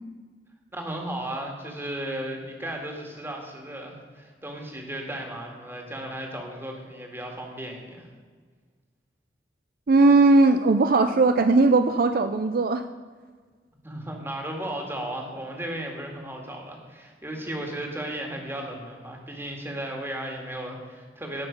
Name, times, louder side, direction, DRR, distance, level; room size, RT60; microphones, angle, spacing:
voice 1, 0.7-8.1 13.8-21.5, right 1 dB, 15° right, 1 dB, 2.0 m, -35 dB
voice 2, 9.9-12.8, right 3 dB, 55° right, 9 dB, 0.5 m, -18 dB
17.5 x 6.1 x 5.2 m, 1.5 s
head